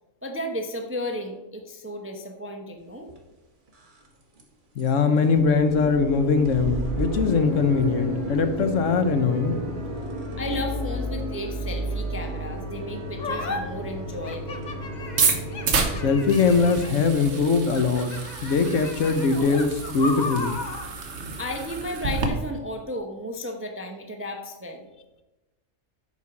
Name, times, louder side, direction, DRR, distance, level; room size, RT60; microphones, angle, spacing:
voice 1, 0.2-3.1 10.4-14.7 21.4-24.9, left 1 dB, 15° right, 4 dB, 0.4 m, -34 dB
sound 1, 3.1-3.2 3.7-4.1 4.4-4.5 4.8-4.9 5.2-16.7, equal, 40° right, 1.3 m, -32 dB
voice 2, 4.8-9.5 16.0-20.6, left 4 dB, 70° left, 9 dB, 1.1 m, -22 dB
sound 2, 13.2-13.6 14.2-17.1 17.7-20.9, left 3 dB, 40° left, 0.8 m, -35 dB
sound 3, 15.0-22.3, right 4 dB, 60° right, 1.2 m, -29 dB
8.1 x 4.6 x 5.8 m, 1.1 s
omnidirectional pair, 1.4 m